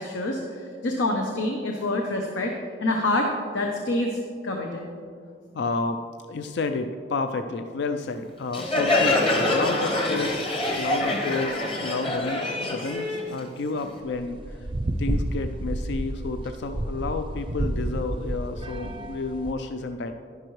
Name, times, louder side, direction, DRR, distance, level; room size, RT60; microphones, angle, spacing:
voice 1, 0.0-2.5 2.8-4.9, left 1 dB, 85° left, 1 dB, 0.9 m, -27 dB
voice 2, 5.5-10.4 10.8-14.6 15.0-20.1, left 3 dB, 65° left, 8 dB, 0.4 m, -31 dB
Crowd, 8.5-14.0, left 2 dB, 30° left, 1.1 m, -25 dB
sound 1, 14.1-19.5, right 1 dB, 25° right, 0.5 m, -30 dB
11.0 x 10.5 x 3.2 m, 2.1 s
head